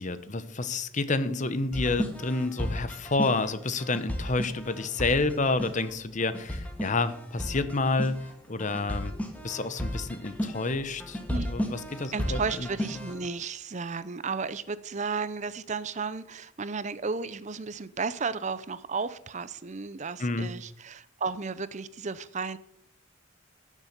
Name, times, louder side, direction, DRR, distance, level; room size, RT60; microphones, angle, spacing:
voice 1, 0.0-9.1 9.4-11.2 11.5-12.7 20.2-20.5, left 3 dB, 35° left, 13 dB, 0.9 m, -29 dB
sound 1, 1.7-13.3, equal, 5° left, 1.7 m, -35 dB
voice 2, 12.1-22.6, right 4 dB, 35° right, 15 dB, 0.6 m, -33 dB
13.5 x 7.3 x 6.7 m, 0.69 s
head